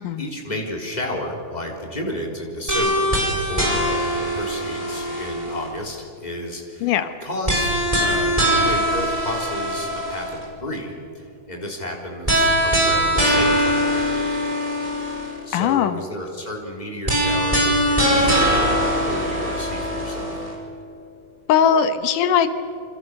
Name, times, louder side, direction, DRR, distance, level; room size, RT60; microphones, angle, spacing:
voice 1, 0.2-3.2 3.5-4.0 4.3-14.5 15.5-20.3, left 1 dB, 15° left, 1 dB, 3.8 m, -32 dB
sound 1, 2.7-5.8 7.5-10.4 12.3-15.4 17.1-20.5, equal, 10° right, 5.6 m, -21 dB
voice 2, 6.8-7.1 15.5-16.0 21.5-22.5, left 8 dB, 85° left, 10 dB, 2.7 m, -19 dB
28.0 x 26.5 x 6.7 m, 2.5 s
omnidirectional pair, 3.6 m